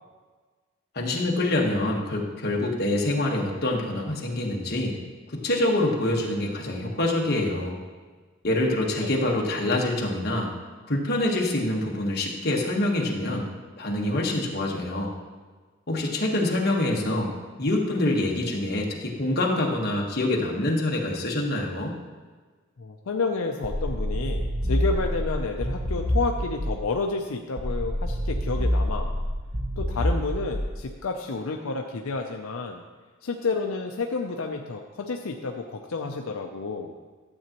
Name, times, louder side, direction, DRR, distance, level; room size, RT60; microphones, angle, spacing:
voice 1, 0.9-5.0 5.3-7.8 8.4-10.5 10.9-13.5 13.8-15.1 15.9-17.3 17.6-21.9, left 1 dB, 50° left, -1 dB, 1.3 m, -25 dB
voice 2, 22.8-29.1 29.8-32.8 33.2-36.9, left 3 dB, 80° left, 3 dB, 0.6 m, -30 dB
sound 1, 23.6-26.9 27.6-30.9, equal, 25° right, 0.9 m, -27 dB
12.5 x 7.8 x 3.0 m, 1.4 s
head